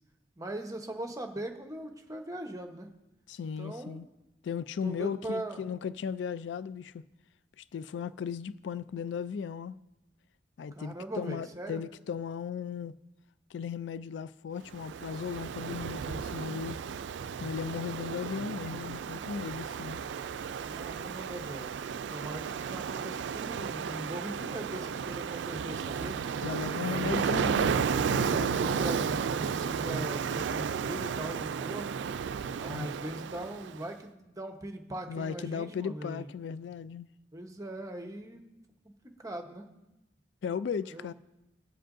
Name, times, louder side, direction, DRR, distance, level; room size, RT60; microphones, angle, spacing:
voice 1, 0.4-2.9 3.6-4.0 4.8-5.6 10.7-11.8 20.6-21.8 22.1-26.2 26.9-27.1 28.5-31.9 32.6-36.3 37.3-38.5 38.8-38.9 39.2-39.7 40.9-41.1, right 1 dB, 20° right, 1.0 m, -40 dB
voice 2, 3.3-4.1 4.4-7.0 7.6-9.8 10.6-12.9 13.5-16.8 17.4-20.0 26.4-28.8 32.6-32.9 35.1-37.1 40.4-41.1, left 6 dB, 80° left, 0.3 m, -36 dB
Ocean, 14.7-33.8, right 6 dB, 80° right, 0.3 m, -33 dB
19.5 x 7.7 x 2.6 m
head